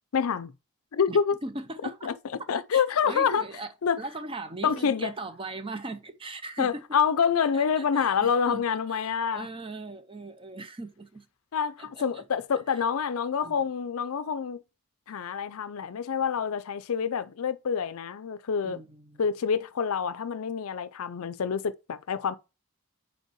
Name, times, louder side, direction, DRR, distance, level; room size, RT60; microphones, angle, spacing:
voice 1, 0.1-0.5 0.9-1.3 2.0-2.1 2.5-3.4 3.8-4.0 4.6-5.1 6.6-9.5 11.5-14.6 15.1-18.8 19.2-22.4, left 6 dB, 70° left, 0.5 m, -27 dB
voice 2, 1.1-2.1 2.4-6.8 7.4-11.3 11.8-12.2 12.7-12.8 13.4-13.7 18.6-19.2, right 2 dB, 25° right, 0.6 m, -40 dB
5.4 x 4.4 x 4.6 m
head